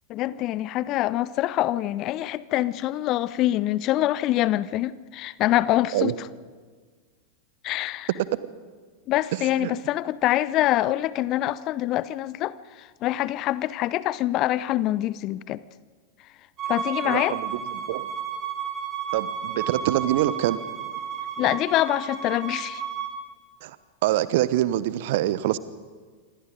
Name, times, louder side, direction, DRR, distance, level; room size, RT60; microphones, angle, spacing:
voice 1, 0.1-6.3 7.6-8.1 9.1-12.5 12.8-15.6 16.7-17.4 21.4-22.8, left 14 dB, 35° left, 18 dB, 0.8 m, -25 dB
Bowed string instrument, 16.6-23.1, right 8 dB, 30° right, 6.5 m, -32 dB
voice 2, 17.0-18.1 19.1-20.6 23.6-23.7 24.0-25.6, right 14 dB, 50° right, 17 dB, 1.2 m, -25 dB
27.5 x 25.0 x 5.2 m, 1.5 s
figure-of-eight pair, 90°, 0 cm